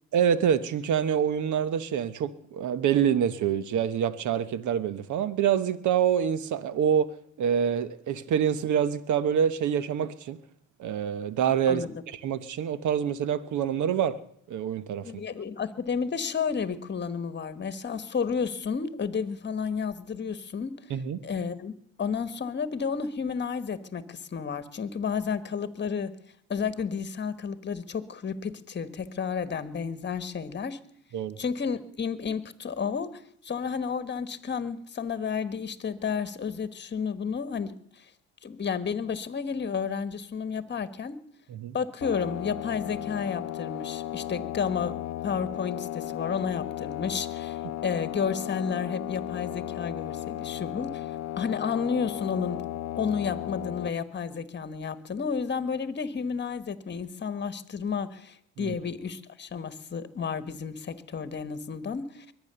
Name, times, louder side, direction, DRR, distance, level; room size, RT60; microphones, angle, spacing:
voice 1, 0.1-7.1 7.4-10.4 10.8-11.8 12.2-14.2 14.5-15.2 20.9-21.2 31.1-31.4 41.5-41.8 58.6-58.8, right 8 dB, 75° right, 1.1 m, -26 dB
voice 2, 15.0-20.8 21.2-21.7 22.0-26.1 26.5-30.8 31.4-38.0 38.4-41.2 41.7-51.1 51.4-52.7 53.0-62.3, left 6 dB, 35° left, 1.3 m, -31 dB
sound 1, 42.0-53.9, left 13 dB, 60° left, 0.5 m, -35 dB
22.5 x 9.3 x 6.8 m
cardioid pair, 90°, 30 cm